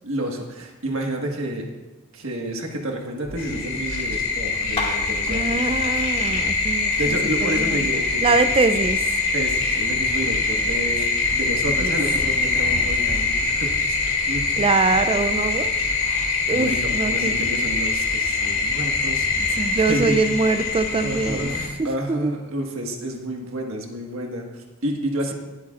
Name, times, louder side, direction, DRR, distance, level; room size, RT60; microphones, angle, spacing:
voice 1, 0.0-1.7 2.1-5.7 6.9-8.4 9.3-14.6 16.5-20.2 21.0-25.3, right 1 dB, 65° right, 1 dB, 1.6 m, -30 dB
sound 1, 3.2-3.4 3.8-5.2 5.7-7.1 7.5-8.9 9.3-10.8 11.2-12.6 13.0-14.5 14.9-16.3 16.7-18.2, equal, 85° left, 2.6 m, -38 dB
sound 2, 3.4-21.7, left 4 dB, 65° left, 2.5 m, -23 dB
sound 3, 4.5-12.2, left 2 dB, 25° left, 2.1 m, -40 dB
voice 2, 5.3-7.1 7.4-7.6 8.2-9.1 11.8-11.9 14.6-15.7 16.5-17.4 19.4-21.5 22.1-22.3, right 3 dB, 25° right, 10 dB, 0.4 m, -23 dB
21.0 x 8.4 x 2.5 m, 1.2 s
head